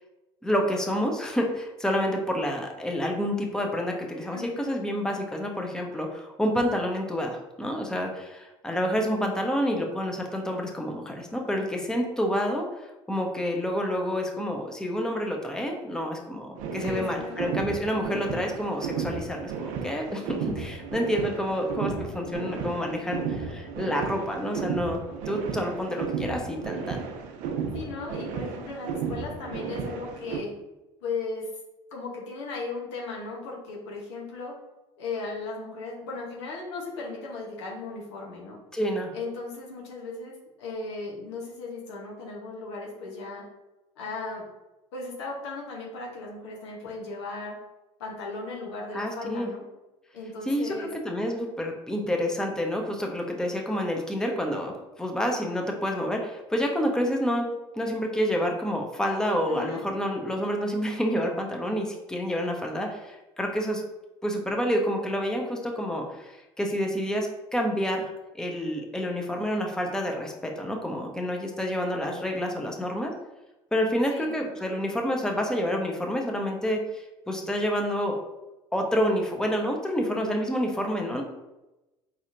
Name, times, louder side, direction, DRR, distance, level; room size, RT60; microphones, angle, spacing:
voice 1, 0.4-25.0 25.3-27.0 38.7-39.1 48.9-49.5 50.5-57.5 57.7-63.8 64.2-73.1 73.7-78.2 78.7-81.2, equal, 5° left, 1 dB, 0.7 m, -28 dB
voice 2, 4.3-4.8 16.8-17.6 27.7-30.5 31.0-31.5 31.9-34.5 35.0-38.6 39.1-40.3 40.6-43.4 44.0-44.4 44.9-47.6 48.0-49.6 50.1-50.9 59.5-59.8 74.1-74.4, left 3 dB, 85° left, -2 dB, 0.9 m, -36 dB
sound 1, 16.6-30.4, right 6 dB, 65° right, 0.5 m, -34 dB
4.1 x 2.8 x 2.5 m, 1.0 s
hypercardioid pair, 75°, 14 cm